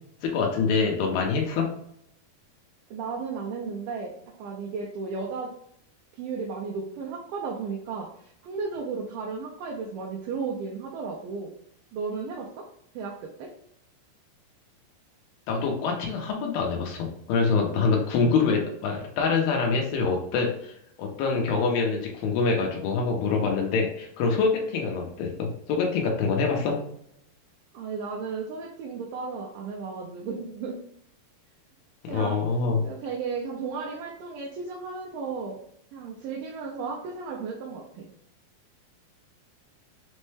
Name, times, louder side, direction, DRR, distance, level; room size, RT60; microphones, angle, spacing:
voice 1, 0.2-1.7 15.5-26.8 32.0-32.8, left 4 dB, 80° left, 1 dB, 2.5 m, -25 dB
voice 2, 2.9-5.5 6.2-11.5 11.9-12.7 12.9-13.5 17.7-17.8 27.7-30.8 32.1-32.4 32.8-35.6 35.9-38.1, right 5 dB, 80° right, -2 dB, 2.1 m, -34 dB
6.2 x 2.1 x 3.2 m, 0.70 s
omnidirectional pair, 4.3 m